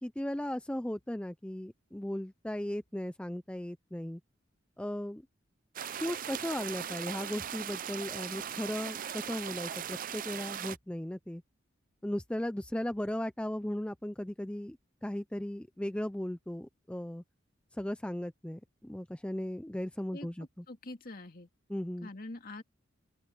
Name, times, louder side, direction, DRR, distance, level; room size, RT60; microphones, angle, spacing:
voice 1, 0.0-4.2 4.8-5.2 6.0-11.4 12.0-17.2 17.7-20.6 21.7-22.1, left 1 dB, 5° left, 0.4 m, -37 dB
sound 1, 5.8-10.8, right 9 dB, 45° right, 0.5 m, -39 dB
voice 2, 20.1-21.5 22.0-22.6, left 2 dB, 45° left, 2.4 m, -45 dB
open air
head